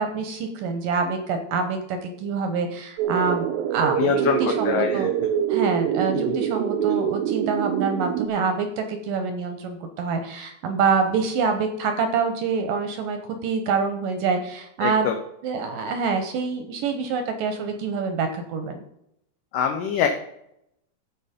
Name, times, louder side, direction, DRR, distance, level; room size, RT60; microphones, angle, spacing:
voice 1, 0.0-5.1 5.5-15.1 15.4-18.8, right 5 dB, 70° right, 7 dB, 2.2 m, -26 dB
sound 1, 3.0-8.3, right 9 dB, 90° right, 2.8 m, -25 dB
voice 2, 4.0-5.1 6.1-6.4 14.8-15.2 19.5-20.1, left 8 dB, 75° left, 4 dB, 2.0 m, -24 dB
14.5 x 5.2 x 5.1 m, 0.78 s
omnidirectional pair, 4.8 m